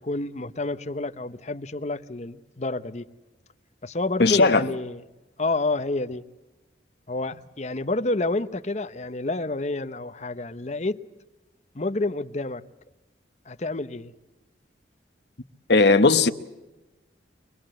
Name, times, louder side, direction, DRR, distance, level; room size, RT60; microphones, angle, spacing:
voice 1, 0.0-3.1 3.8-5.0 5.4-6.2 7.1-11.0 11.7-12.6 13.5-14.1, left 2 dB, 40° left, 0.9 m, -29 dB
voice 2, 4.2-4.6 15.7-16.3, left 3 dB, 70° left, 1.1 m, -17 dB
25.0 x 21.5 x 7.7 m
head